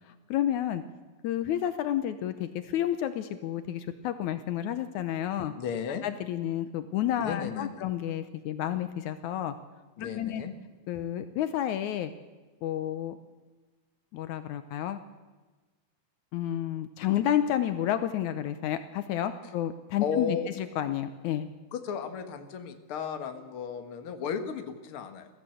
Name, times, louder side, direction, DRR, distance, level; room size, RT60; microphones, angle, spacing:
voice 1, 0.3-0.8 1.2-5.5 6.0-9.5 10.0-10.4 10.9-12.1 12.6-13.2 14.1-15.0 16.3-21.5, left 11 dB, 80° left, 10 dB, 2.2 m, -30 dB
voice 2, 5.4-6.0 7.2-7.9 10.0-10.5 20.0-20.5 21.7-25.3, left 7 dB, 50° left, 7 dB, 2.1 m, -34 dB
23.0 x 15.0 x 7.8 m, 1.3 s
omnidirectional pair, 3.5 m